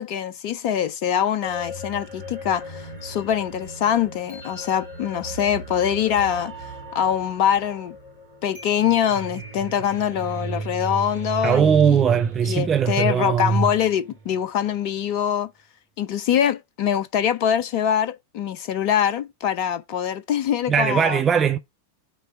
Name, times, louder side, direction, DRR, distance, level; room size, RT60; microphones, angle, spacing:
voice 1, 0.0-7.9 8.4-12.0 12.4-15.5 16.0-21.2, left 9 dB, 45° left, 0.5 m, -24 dB
sound 1, 1.4-14.4, right 2 dB, 65° right, 3.0 m, -36 dB
voice 2, 11.4-13.7 20.7-21.6, right 7 dB, 25° right, 0.5 m, -19 dB
6.2 x 3.3 x 5.6 m
figure-of-eight pair, 90°, 0 cm